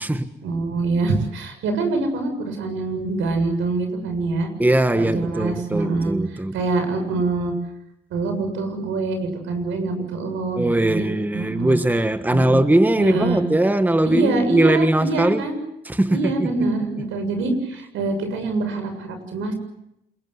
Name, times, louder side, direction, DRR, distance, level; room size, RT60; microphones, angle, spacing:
voice 1, 0.4-4.5 4.9-6.2 6.5-7.5 8.1-11.1 11.3-11.8 12.3-12.6 13.0-13.4 14.0-15.6 16.1-19.5, right 3 dB, 85° right, 7.1 m, -25 dB
voice 2, 4.6-6.6 10.6-15.4 15.8-16.5, right 1 dB, 10° right, 1.5 m, -20 dB
28.5 x 22.5 x 8.1 m
cardioid pair, 90°, 20 cm